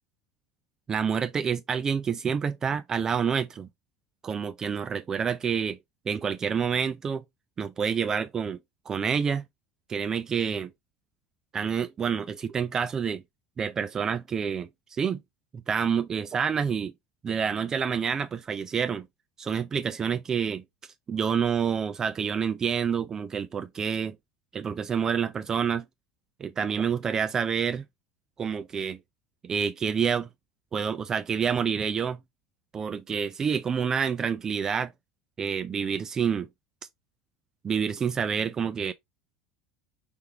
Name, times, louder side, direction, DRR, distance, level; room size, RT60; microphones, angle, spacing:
voice 1, 0.9-3.7 4.2-5.8 6.1-7.2 7.6-8.6 8.9-9.4 9.9-10.7 11.5-13.2 13.6-15.2 15.5-16.9 17.2-19.1 19.4-20.6 21.1-24.2 24.5-25.8 26.4-27.8 28.4-29.0 29.4-30.3 30.7-32.2 32.7-34.9 35.4-36.5 37.6-38.9, right 7 dB, 25° right, 0.4 m, -28 dB
4.5 x 3.5 x 2.8 m
figure-of-eight pair, 70°, 2 cm